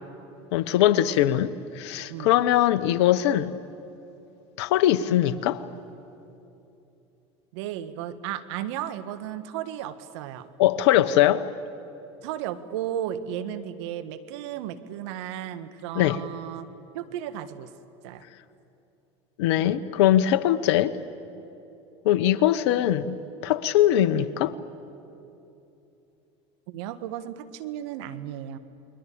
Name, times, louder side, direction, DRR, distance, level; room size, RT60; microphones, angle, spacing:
voice 1, 0.5-3.5 4.6-5.6 10.6-11.5 15.9-16.2 19.4-21.0 22.0-23.2 23.4-24.5, left 12 dB, 75° left, 0.9 m, -21 dB
voice 2, 1.1-1.5 2.1-2.3 7.5-10.5 12.2-16.7 16.9-17.7 18.0-18.2 26.7-28.6, right 11 dB, 75° right, 1.6 m, -34 dB
29.5 x 22.0 x 8.6 m
supercardioid pair, 100°, 15 cm